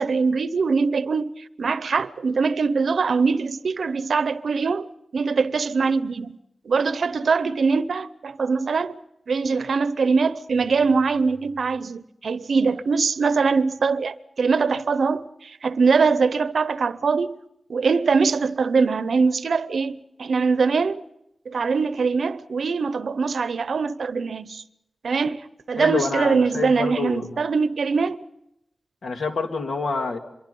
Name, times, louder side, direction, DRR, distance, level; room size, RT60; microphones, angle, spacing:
voice 1, 0.0-6.4 6.6-9.0 9.3-17.4 17.7-21.0 21.5-24.6 25.0-28.2, right 4 dB, 75° right, 0.7 m, -22 dB
voice 2, 25.8-27.4 29.0-30.2, left 4 dB, 70° left, 2.1 m, -27 dB
25.0 x 22.5 x 5.3 m
wide cardioid pair, 130°, 0 cm